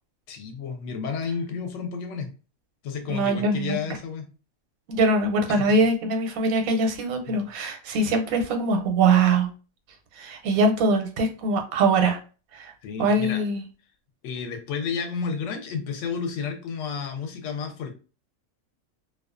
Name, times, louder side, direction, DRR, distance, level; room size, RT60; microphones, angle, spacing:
voice 1, 0.3-2.3 2.8-4.3 5.5-5.8 7.3-7.4 12.8-13.4 14.2-17.9, left 6 dB, 70° left, 5 dB, 0.8 m, -31 dB
voice 2, 3.1-3.8 4.9-9.5 10.2-12.2 12.5-12.7 13.0-13.6, right 3 dB, 90° right, 4 dB, 1.0 m, -22 dB
2.3 x 2.3 x 2.4 m, 0.35 s
omnidirectional pair, 1.4 m